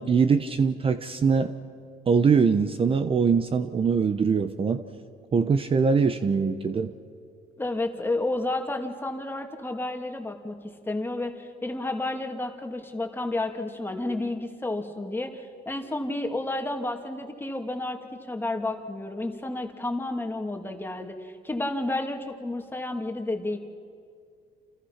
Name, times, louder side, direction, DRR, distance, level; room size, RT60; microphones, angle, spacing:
voice 1, 0.0-1.5 2.1-4.8 5.3-6.9, right 5 dB, 35° right, 9 dB, 1.0 m, -22 dB
voice 2, 7.6-10.6 10.9-18.0 18.3-23.6, left 2 dB, 10° left, 4 dB, 2.5 m, -31 dB
29.0 x 28.0 x 5.9 m, 2.2 s
cardioid pair, 110°, 17 cm